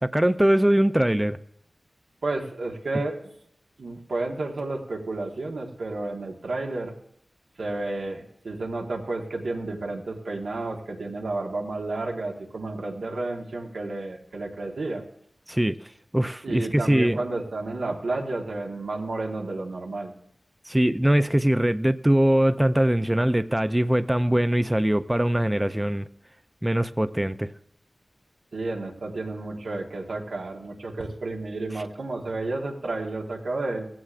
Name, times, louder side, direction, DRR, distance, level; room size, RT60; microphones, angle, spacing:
voice 1, 0.0-1.4 15.5-17.2 20.7-26.1 26.6-27.5, right 1 dB, 15° right, 0.4 m, -22 dB
voice 2, 2.2-3.1 3.8-6.9 7.6-15.0 16.4-20.1 28.5-33.9, right 2 dB, 90° right, 1.4 m, -31 dB
16.5 x 15.5 x 2.5 m
wide cardioid pair, 55°, 0 cm